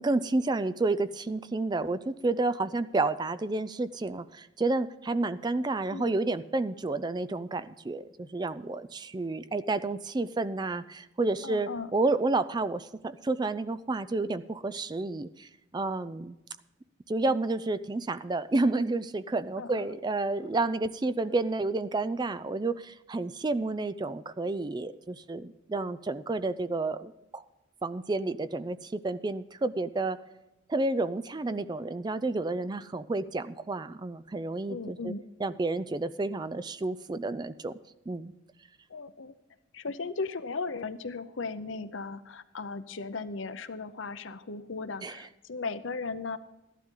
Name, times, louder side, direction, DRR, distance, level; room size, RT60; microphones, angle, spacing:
voice 1, 0.0-15.5 15.7-16.4 17.1-27.4 27.8-30.2 30.7-35.1 35.4-37.8 38.1-38.3 45.0-45.2, right 2 dB, 20° right, 14 dB, 0.4 m, -30 dB
voice 2, 11.4-11.9 19.6-19.9 21.2-21.3 31.5-31.6 34.7-35.2 38.9-39.3 39.7-46.4, left 4 dB, 70° left, 12 dB, 0.7 m, -37 dB
14.0 x 11.5 x 3.7 m, 0.96 s
head